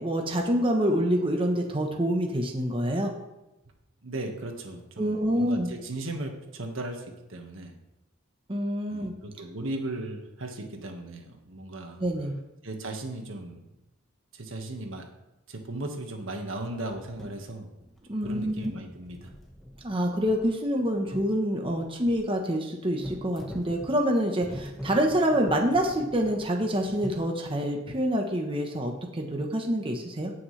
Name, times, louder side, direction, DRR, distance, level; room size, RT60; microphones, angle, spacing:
voice 1, 0.0-3.1 5.0-5.7 8.5-9.1 12.0-12.3 18.1-18.5 19.8-30.3, equal, 25° right, 2 dB, 1.0 m, -26 dB
voice 2, 4.0-7.7 8.9-12.0 12.6-13.6 14.3-15.0 15.5-17.7 18.2-19.3, right 2 dB, 80° right, 3 dB, 1.6 m, -37 dB
sound 1, 16.9-17.4 17.8-18.3 18.6-22.3 23.0-27.2, equal, ahead, 1.4 m, -43 dB
17.0 x 6.3 x 3.3 m, 0.96 s
head